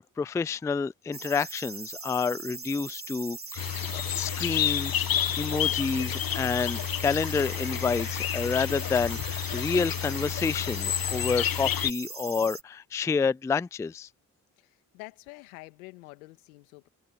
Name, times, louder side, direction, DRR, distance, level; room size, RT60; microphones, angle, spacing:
voice 1, 0.0-3.6 3.9-5.1 5.4-14.1, left 5 dB, 10° left, 0.3 m, -29 dB
sound 1, 1.1-12.6, right 4 dB, 30° right, 3.4 m, -40 dB
sound 2, 3.6-11.9, left 11 dB, 55° left, 1.3 m, -30 dB
voice 2, 14.6-16.9, left 24 dB, 85° left, 2.2 m, -47 dB
hypercardioid pair, 40°, 42 cm